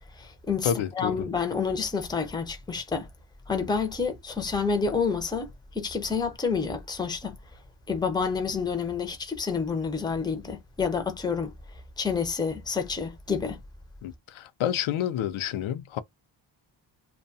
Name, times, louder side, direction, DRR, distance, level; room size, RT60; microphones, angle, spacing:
voice 1, 0.0-3.1 3.5-7.4 7.9-11.5 12.0-13.6, left 5 dB, 10° left, 0.4 m, -29 dB
voice 2, 0.6-1.3 14.0-16.0, left 10 dB, 90° left, 0.6 m, -29 dB
2.6 x 2.2 x 2.6 m
wide cardioid pair, 160°, 46 cm